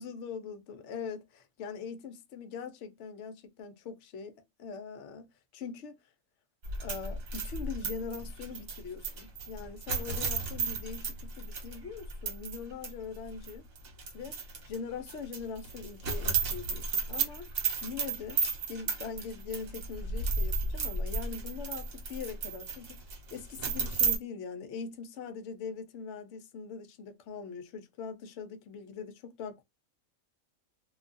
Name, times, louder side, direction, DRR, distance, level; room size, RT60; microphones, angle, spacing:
voice 1, 0.0-6.0 6.8-13.7 14.1-14.4 14.6-17.5 17.8-18.4 18.7-23.0 23.3-29.6, left 6 dB, 65° left, 0.8 m, -42 dB
sound 1, 6.6-12.6 12.8-12.9 13.4-14.8 15.1-24.2, right 4 dB, 70° right, 1.3 m, -33 dB
2.6 x 2.3 x 2.4 m
omnidirectional pair, 1.5 m